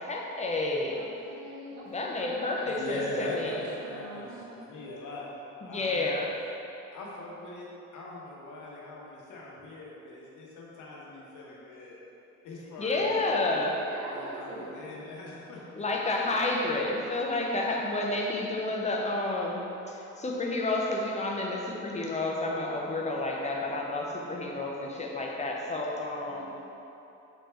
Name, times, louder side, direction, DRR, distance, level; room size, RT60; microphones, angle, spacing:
voice 1, 0.0-1.0 1.9-3.6 5.6-6.4 12.8-13.8 15.7-26.4, left 2 dB, 25° left, -1 dB, 0.5 m, -30 dB
voice 2, 0.9-4.6 13.0-14.8 16.1-16.4 26.3-26.4, right 1 dB, 75° right, -6 dB, 1.1 m, -44 dB
voice 3, 2.7-5.3 5.6-6.2 6.9-7.7 7.9-12.0 12.4-13.4 14.1-15.8, left 1 dB, 80° left, -4 dB, 0.9 m, -41 dB
4.0 x 3.3 x 3.3 m, 3.0 s
cardioid pair, 90°, 30 cm